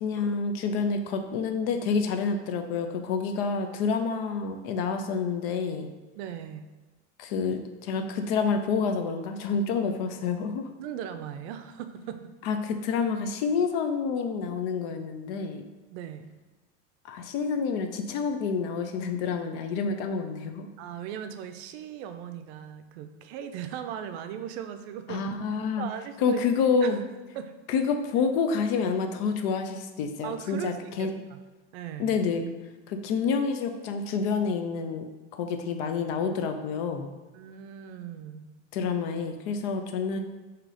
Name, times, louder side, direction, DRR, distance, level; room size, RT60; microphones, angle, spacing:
voice 1, 0.0-5.9 7.2-10.7 12.4-15.6 17.0-20.7 25.1-25.9 26.2-27.0 27.7-31.1 32.0-32.5 32.9-35.1 35.3-37.1 38.7-40.2, left 5 dB, 55° left, 6 dB, 0.6 m, -28 dB
voice 2, 6.2-6.6 10.8-12.3 15.9-16.3 20.8-25.3 25.8-26.4 26.8-26.9 27.3-27.5 30.2-31.4 31.7-32.2 37.3-38.5, right 9 dB, 65° right, 8 dB, 0.5 m, -38 dB
3.8 x 2.9 x 4.8 m, 1.2 s
supercardioid pair, 150°, 34 cm